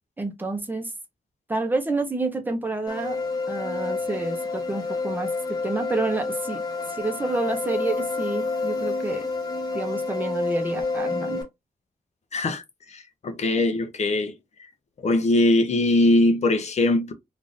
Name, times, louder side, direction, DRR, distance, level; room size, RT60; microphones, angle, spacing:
voice 1, 0.2-0.9 1.5-3.2 3.5-5.3 5.6-6.6 6.9-9.2 9.7-11.4, right 3 dB, 10° right, 0.7 m, -29 dB
sound 1, 2.9-11.4, left 3 dB, 25° left, 1.0 m, -29 dB
voice 2, 12.3-12.6 12.9-14.3 15.0-17.1, left 2 dB, 45° left, 0.6 m, -21 dB
3.6 x 2.5 x 2.4 m
wide cardioid pair, 155°, 15 cm